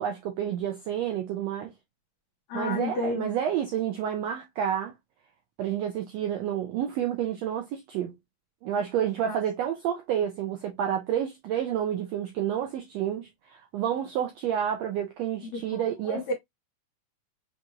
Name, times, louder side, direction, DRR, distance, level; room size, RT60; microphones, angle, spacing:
voice 1, 0.0-1.7 2.5-4.9 5.6-8.1 8.6-16.3, right 9 dB, 90° right, 1.5 m, -29 dB
voice 2, 2.5-3.3 9.3-9.4 15.5-16.3, left 3 dB, 65° left, 2.2 m, -32 dB
6.0 x 2.7 x 2.4 m
omnidirectional pair, 3.7 m